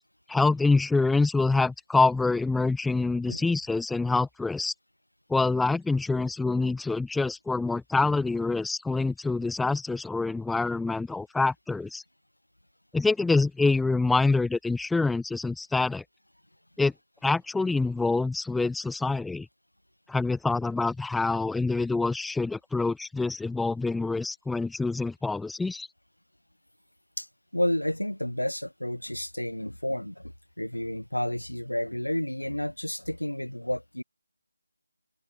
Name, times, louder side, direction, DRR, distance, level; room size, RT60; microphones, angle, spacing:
voice 1, 0.3-4.7 5.3-12.0 12.9-16.0 16.8-16.9 17.2-19.5 20.1-25.9, left 3 dB, ahead, 0.5 m, -26 dB
voice 2, 27.5-30.3 30.6-34.0, left 1 dB, 80° left, 2.8 m, -31 dB
figure-of-eight pair, 160°, 0 cm